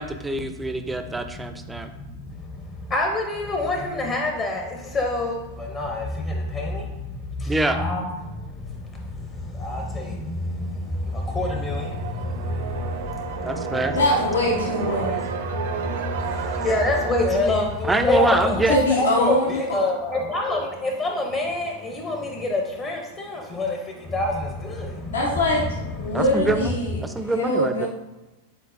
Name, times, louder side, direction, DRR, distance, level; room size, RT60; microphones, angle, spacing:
voice 1, 0.0-1.9 7.5-7.8 13.4-14.0 17.9-18.8 26.1-26.7 27.0-27.9, right 2 dB, 10° right, 8 dB, 0.4 m, -25 dB
voice 2, 1.1-14.0 14.5-25.7 26.0-26.3 27.1-27.2, left 2 dB, 30° left, 1 dB, 0.6 m, -27 dB
sound 1, 11.1-18.8, right 6 dB, 70° right, 0.5 m, -32 dB
voice 3, 13.9-15.1 18.7-19.8 25.1-25.7 26.0-27.0 27.3-27.9, left 1 dB, 90° left, -3 dB, 1.0 m, -22 dB
4.5 x 3.9 x 2.5 m, 1.0 s
hypercardioid pair, 110°, 0 cm